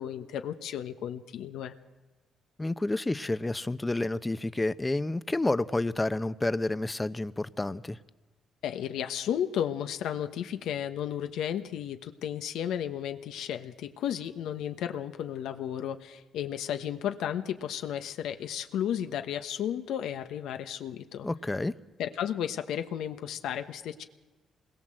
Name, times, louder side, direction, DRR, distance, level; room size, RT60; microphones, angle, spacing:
voice 1, 0.0-1.7 8.6-21.3 22.0-24.0, left 10 dB, 80° left, 1.2 m, -33 dB
voice 2, 2.6-8.0 21.2-21.7, left 2 dB, 15° left, 0.9 m, -29 dB
26.0 x 21.0 x 7.8 m
cardioid pair, 90°, 0 cm